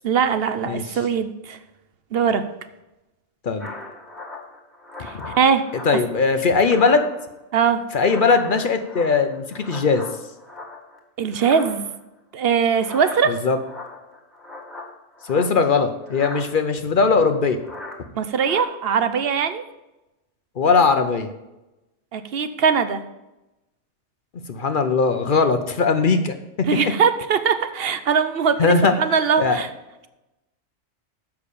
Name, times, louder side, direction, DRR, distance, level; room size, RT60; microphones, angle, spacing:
voice 1, 0.0-1.6 2.1-2.4 5.0-5.6 7.5-7.8 11.2-11.9 12.3-13.4 18.2-19.6 22.1-23.0 26.7-29.7, right 6 dB, 60° right, 11 dB, 0.8 m, -21 dB
sound 1, 3.6-6.2 6.5-7.4 7.7-11.0 11.3-12.0 12.7-15.8 16.1-16.5 17.5-18.0 18.3-18.6, left 2 dB, ahead, 1.6 m, -39 dB
voice 2, 5.8-7.0 7.9-10.0 13.3-13.6 15.3-17.6 20.6-21.3 24.5-26.4 26.8-26.9 28.6-28.9 29.4-29.6, left 4 dB, 50° left, 8 dB, 0.8 m, -19 dB
7.2 x 5.8 x 6.7 m, 0.99 s
omnidirectional pair, 1.3 m